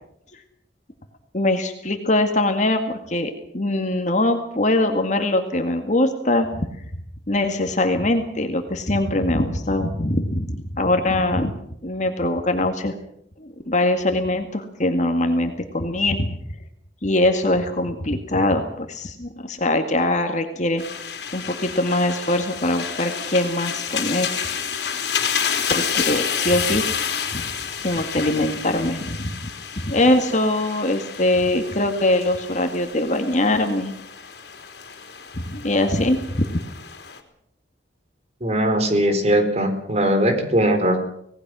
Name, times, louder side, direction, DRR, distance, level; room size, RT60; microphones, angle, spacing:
voice 1, 1.3-6.7 7.3-11.5 11.8-12.9 13.4-16.3 17.0-20.8 21.3-24.3 25.7-26.9 27.3-27.4 27.8-33.9 35.3-36.6, left 1 dB, 45° left, 5 dB, 2.0 m, -22 dB
sound 1, 20.8-37.2, left 7 dB, 70° left, 3.5 m, -30 dB
voice 2, 38.4-41.0, right 1 dB, 40° right, 7 dB, 4.0 m, -20 dB
26.0 x 19.0 x 6.3 m, 0.72 s
head